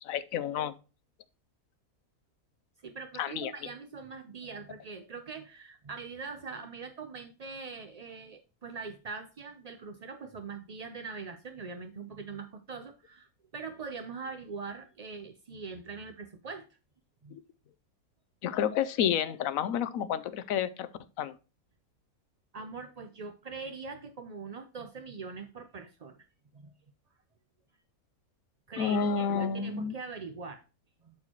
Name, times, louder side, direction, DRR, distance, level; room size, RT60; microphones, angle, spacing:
voice 1, 0.0-0.7 3.2-3.5 17.3-17.4 18.4-20.9 21.2-21.4 28.8-30.0, left 8 dB, 75° left, 1.0 m, -30 dB
voice 2, 2.8-13.3 13.5-16.7 17.2-17.4 22.5-26.3 26.5-26.7 28.7-30.6 31.0-31.1, right 4 dB, 55° right, 0.4 m, -42 dB
11.5 x 4.4 x 2.9 m
omnidirectional pair, 1.5 m